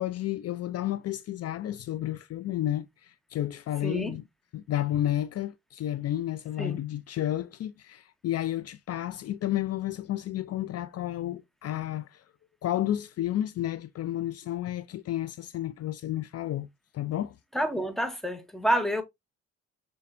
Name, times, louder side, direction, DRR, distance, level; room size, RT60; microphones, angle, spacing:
voice 1, 0.0-4.2 4.5-12.2 12.6-16.7 16.9-17.3, left 13 dB, 55° left, 0.4 m, -31 dB
voice 2, 3.8-4.2 6.6-6.8 17.5-19.0, right 1 dB, ahead, 0.9 m, -28 dB
6.7 x 3.2 x 2.5 m
cardioid pair, 90°, 30 cm